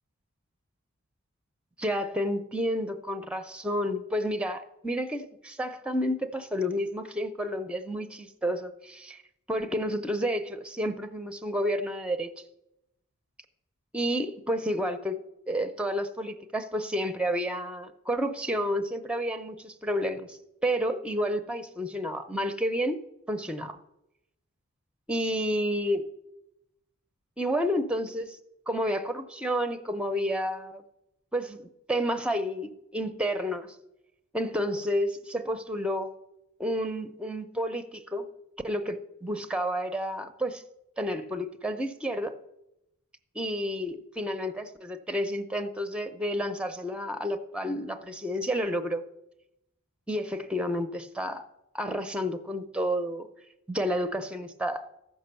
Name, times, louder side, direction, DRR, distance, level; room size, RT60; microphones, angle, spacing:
voice 1, 1.8-9.2 9.5-12.3 13.9-15.2 15.5-23.0 23.3-23.8 25.1-26.1 27.4-28.4 28.7-30.8 31.3-33.8 34.3-36.1 36.6-38.3 38.6-40.6 41.0-42.3 43.3-49.0 50.1-51.4 51.7-53.3 53.7-55.0, equal, 5° right, 10 dB, 0.6 m, -30 dB
14.0 x 6.0 x 6.7 m, 0.86 s
head